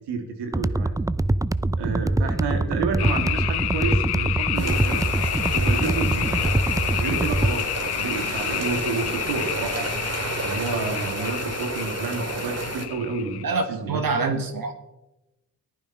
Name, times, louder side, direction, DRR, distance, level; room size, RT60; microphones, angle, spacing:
voice 1, 0.1-0.9 1.8-5.0 5.5-6.5 6.9-7.7 8.0-10.0 10.4-13.4 13.7-14.0, right 4 dB, 90° right, 5 dB, 2.9 m, -30 dB
sound 1, 0.5-7.5, right 2 dB, 10° right, 0.5 m, -24 dB
sound 2, 3.0-13.4, left 14 dB, 75° left, 0.6 m, -29 dB
sound 3, 4.5-12.9, right 2 dB, 40° right, 3.2 m, -31 dB
voice 2, 13.4-14.7, right 3 dB, 60° right, 7 dB, 2.0 m, -25 dB
14.5 x 12.0 x 6.0 m, 0.97 s
cardioid pair, 55°, 40 cm